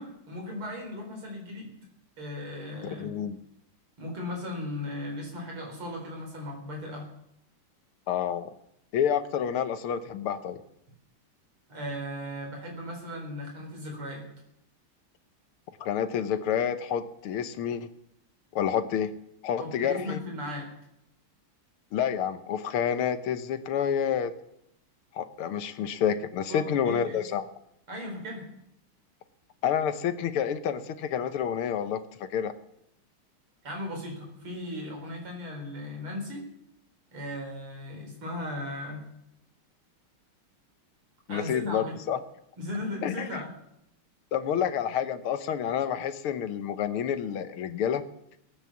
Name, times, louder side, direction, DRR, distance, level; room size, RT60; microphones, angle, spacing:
voice 1, 0.0-1.7 2.2-3.1 4.0-7.1 11.7-14.3 19.6-20.7 26.5-27.3 27.9-28.5 33.6-36.5 37.1-39.1 41.3-41.9 42.6-43.5, left 1 dB, 75° right, 1 dB, 4.9 m, -37 dB
voice 2, 3.0-3.4 8.1-8.5 8.9-10.6 15.8-17.9 18.5-19.1 19.4-20.2 21.9-24.3 25.1-27.4 29.6-32.5 41.3-42.2 43.0-43.4 44.3-48.0, left 8 dB, 80° left, 11 dB, 1.8 m, -29 dB
19.0 x 9.1 x 7.3 m, 0.82 s
omnidirectional pair, 2.4 m